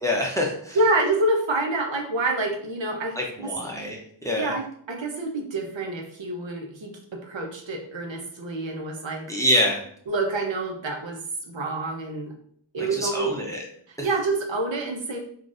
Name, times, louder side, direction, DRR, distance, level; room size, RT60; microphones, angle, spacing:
voice 1, 0.0-0.8 3.2-4.5 9.3-9.8 13.0-13.6 14.0-14.1, equal, 5° left, -1 dB, 0.6 m, -25 dB
voice 2, 0.7-3.5 4.4-4.6 4.9-9.3 10.1-11.2 11.5-12.3 12.7-13.3 14.0-15.2, right 2 dB, 70° right, 1 dB, 0.7 m, -27 dB
3.8 x 2.3 x 2.5 m, 0.64 s
wide cardioid pair, 75°, 47 cm